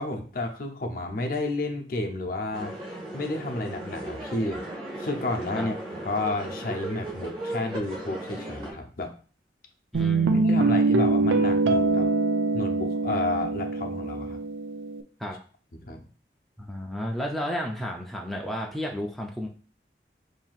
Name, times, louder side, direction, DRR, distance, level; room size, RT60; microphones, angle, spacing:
voice 1, 0.0-2.7 3.1-4.7 5.0-9.1 10.4-12.1 12.5-14.4 15.8-16.0, left 2 dB, 50° left, 3 dB, 0.6 m, -31 dB
sound 1, 2.5-8.7, right 1 dB, 30° right, 1.3 m, -36 dB
voice 2, 9.9-10.7 15.2-15.4 16.6-19.5, left 1 dB, ahead, -1 dB, 0.4 m, -32 dB
Guitar, 9.9-15.0, right 3 dB, 85° right, 0.4 m, -24 dB
5.6 x 2.6 x 2.4 m, 0.41 s
head